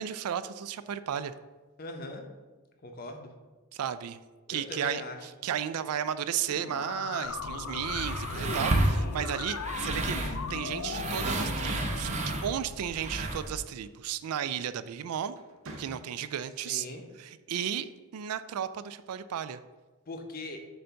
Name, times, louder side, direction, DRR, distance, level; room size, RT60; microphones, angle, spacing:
voice 1, 0.0-1.3 3.7-4.2 4.5-5.0 5.4-12.1 12.4-15.3 15.8-16.9 17.2-19.6, right 9 dB, 80° right, 13 dB, 0.3 m, -34 dB
voice 2, 1.8-2.2 2.8-3.3 4.5-5.3 8.4-9.3 16.6-17.0 20.1-20.6, left 2 dB, 40° left, 4 dB, 0.7 m, -41 dB
sound 1, 6.5-12.4, left 6 dB, 60° left, 0.3 m, -38 dB
sound 2, 7.2-13.6, right 2 dB, 30° right, 0.6 m, -31 dB
sound 3, 12.9-13.2 14.6-14.9 15.3-16.5, right 1 dB, 65° right, 0.9 m, -50 dB
7.7 x 2.7 x 5.6 m, 1.3 s
head